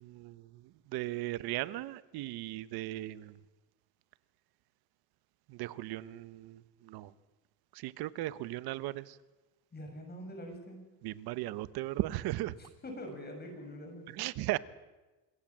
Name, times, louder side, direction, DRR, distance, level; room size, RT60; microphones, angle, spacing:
voice 1, 0.0-3.4 5.5-7.1 7.7-9.2 11.0-12.6 14.1-14.6, right 16 dB, 80° right, 16 dB, 1.1 m, -37 dB
voice 2, 9.7-10.8 12.6-14.3, equal, 25° left, 3 dB, 7.6 m, -45 dB
26.5 x 22.0 x 7.5 m, 1.2 s
cardioid pair, 130°, 37 cm